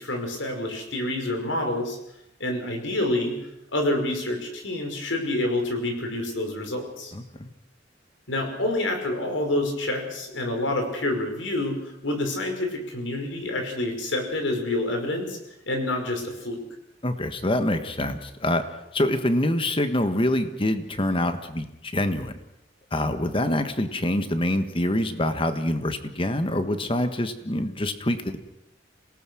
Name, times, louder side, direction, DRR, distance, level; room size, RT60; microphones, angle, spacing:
voice 1, 0.0-2.0 2.4-3.4 3.7-7.1 8.3-15.4 15.7-16.6, left 1 dB, 85° left, 4 dB, 5.4 m, -27 dB
voice 2, 7.1-7.5 17.0-18.6 18.9-22.3 22.9-28.4, left 1 dB, 30° left, 9 dB, 1.6 m, -25 dB
27.0 x 18.5 x 6.3 m, 0.85 s
head